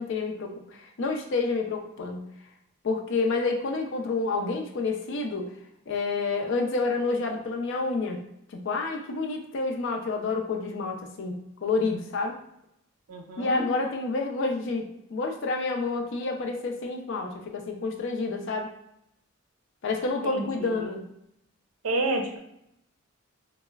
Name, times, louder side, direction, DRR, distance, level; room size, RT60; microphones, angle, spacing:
voice 1, 0.0-2.3 2.8-5.5 5.9-8.2 8.5-12.4 13.4-18.7 19.8-21.0, left 3 dB, 60° left, 3 dB, 0.5 m, -29 dB
voice 2, 13.1-13.7 20.2-20.8 21.8-22.4, right 2 dB, 90° right, 3 dB, 0.5 m, -30 dB
4.0 x 2.0 x 2.3 m, 0.77 s
head